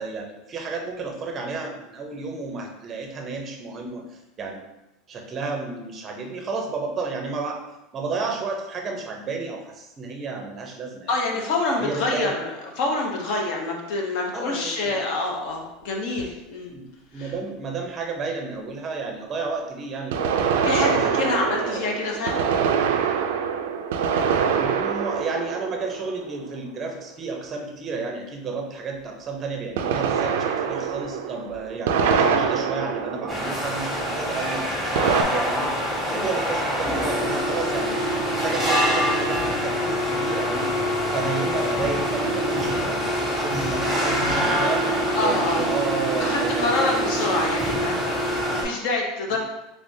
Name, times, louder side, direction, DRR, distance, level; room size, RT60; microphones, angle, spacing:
voice 1, 0.0-4.0 4.4-4.6 5.1-7.6 7.9-11.1 11.8-12.3 14.3-15.0 16.7-21.9 24.6-35.7 36.0-38.0 38.2-40.7 41.1-44.9 45.2-47.0 49.3-49.4, right 4 dB, 25° right, 2 dB, 0.5 m, -32 dB
voice 2, 11.1-16.7 17.1-17.3 20.6-22.4 36.1-36.3 45.1-45.6 46.2-49.4, left 2 dB, 55° left, 0 dB, 0.8 m, -27 dB
sound 1, 16.2-16.3 20.1-26.6 29.8-34.0 35.0-35.2, right 6 dB, 85° right, 0.3 m, -24 dB
sound 2, 33.3-48.6, equal, 5° left, 1.1 m, -25 dB
3.5 x 3.3 x 2.6 m, 0.96 s
supercardioid pair, 160°, 0 cm